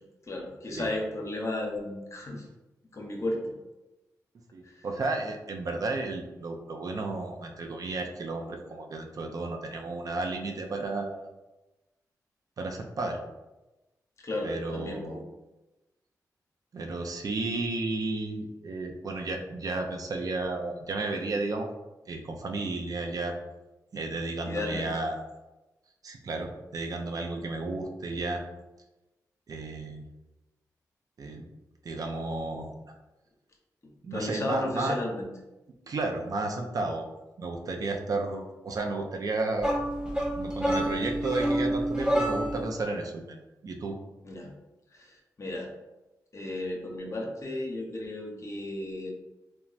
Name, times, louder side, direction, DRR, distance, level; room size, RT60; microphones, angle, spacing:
voice 1, 0.2-2.4 2.9-3.5 4.6-4.8 14.2-15.2 24.5-24.9 33.8-35.3 44.2-44.5 44.9-45.7 46.3-49.1, left 1 dB, 45° left, 0 dB, 0.7 m, -34 dB
voice 2, 4.5-11.3 12.6-13.2 14.4-15.2 16.7-21.7 22.1-23.4 23.9-25.2 26.0-28.4 29.5-30.0 31.2-31.5 31.8-32.7 34.0-35.0 35.9-37.1 37.4-39.7 40.4-44.0, right 2 dB, 60° right, 3 dB, 0.4 m, -33 dB
sound 1, 39.6-42.7, right 1 dB, 10° right, 0.6 m, -28 dB
3.0 x 2.2 x 2.4 m, 1.0 s
cardioid pair, 50°, 7 cm